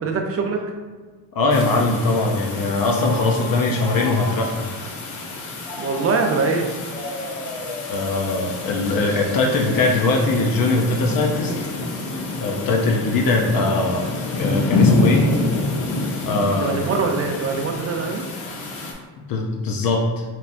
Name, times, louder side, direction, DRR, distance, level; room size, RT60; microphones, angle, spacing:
voice 1, 0.0-0.6 5.8-6.7 16.6-18.2, right 4 dB, 35° right, 3 dB, 0.5 m, -23 dB
voice 2, 1.3-4.6 7.9-11.5 12.4-15.3 16.3-16.8 19.3-20.2, left 3 dB, 50° left, 0 dB, 0.6 m, -21 dB
sound 1, 1.5-18.9, left 3 dB, 80° left, 1.0 m, -27 dB
Telephone, 2.8-4.8 5.6-8.7, left 1 dB, 15° left, 1.0 m, -35 dB
4.4 x 3.4 x 2.5 m, 1.4 s
cardioid pair, 120°, 44 cm